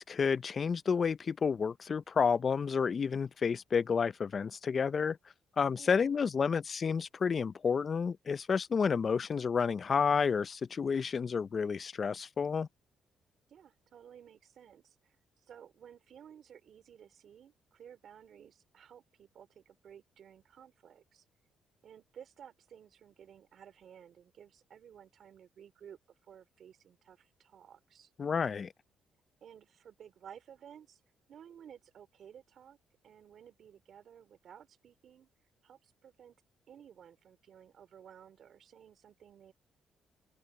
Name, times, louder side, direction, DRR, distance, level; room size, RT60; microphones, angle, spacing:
voice 1, 0.0-5.2 5.6-12.7 28.2-28.7, left 6 dB, 45° left, 0.5 m, -30 dB
voice 2, 5.8-6.3 13.5-21.2 21.8-26.0 26.3-28.1 29.4-31.0 31.3-32.8 33.0-35.3 35.6-36.4 36.7-39.5, right 8 dB, 60° right, 3.1 m, -55 dB
open air
cardioid pair, 90°, 0 cm